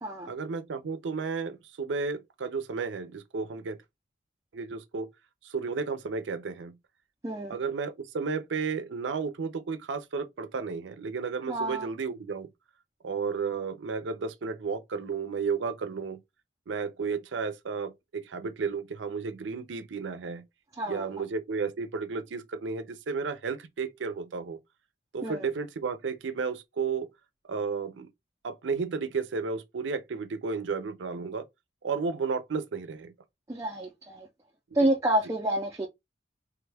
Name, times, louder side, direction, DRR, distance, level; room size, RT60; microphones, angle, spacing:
voice 1, 0.3-3.8 4.5-5.1 5.4-6.8 7.5-12.5 13.0-16.2 16.7-20.4 20.8-24.6 25.1-27.1 27.5-28.1 28.4-31.4 31.8-33.1 34.8-34.9, right 5 dB, 85° right, 0.5 m, -33 dB
voice 2, 7.2-7.6 11.5-11.9 20.8-21.0 25.2-25.4 33.5-34.3 34.7-35.9, right 1 dB, 15° right, 0.4 m, -28 dB
3.3 x 2.3 x 3.3 m
head